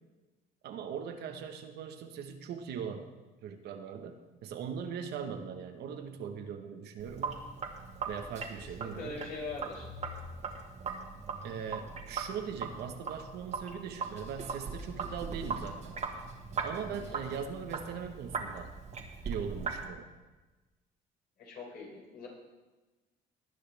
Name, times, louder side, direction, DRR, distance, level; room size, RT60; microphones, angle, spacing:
voice 1, 0.6-3.1 3.4-7.5 8.1-9.2 11.4-16.0 16.6-18.7 19.2-20.1, right 7 dB, 75° right, 6 dB, 1.3 m, -40 dB
Sink (filling or washing), 7.0-19.9, right 4 dB, 45° right, 1.7 m, -40 dB
voice 2, 8.8-9.9 16.9-17.3 21.4-22.3, left 3 dB, 65° left, -3 dB, 5.2 m, -42 dB
19.0 x 9.8 x 3.5 m, 1.2 s
cardioid pair, 110°, 17 cm